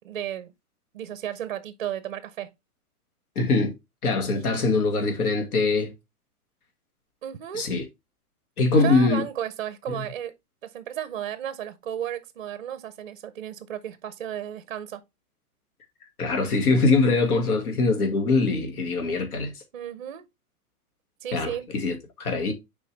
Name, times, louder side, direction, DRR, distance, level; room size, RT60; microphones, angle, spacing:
voice 1, 0.0-0.5 0.9-2.5 7.2-7.7 8.8-10.3 10.6-15.0 19.7-20.2 21.2-21.6, right 10 dB, 35° right, 0.5 m, -34 dB
voice 2, 3.4-3.7 4.0-5.9 7.5-7.9 8.6-9.3 9.9-10.0 16.2-19.5 21.3-22.5, left 3 dB, 70° left, 2.0 m, -23 dB
6.5 x 4.5 x 3.3 m
hypercardioid pair, 170°, 46 cm